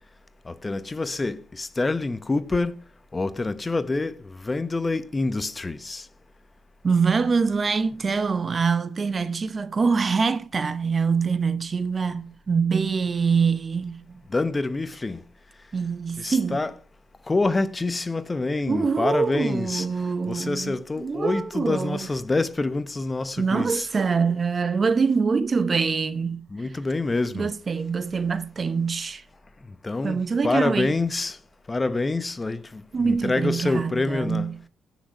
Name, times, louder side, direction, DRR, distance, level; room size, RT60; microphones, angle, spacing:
voice 1, 0.5-2.8 3.1-6.1 14.3-15.2 16.2-16.7 17.3-19.9 20.3-23.9 26.5-27.5 29.8-31.4 31.7-34.5, left 3 dB, 25° left, 1.0 m, -26 dB
voice 2, 6.8-14.2 15.7-16.6 18.7-22.1 23.4-26.4 27.3-29.2 30.0-30.9 32.9-34.5, right 5 dB, 40° right, 0.9 m, -24 dB
16.5 x 6.3 x 5.6 m
supercardioid pair, 70°, 0 cm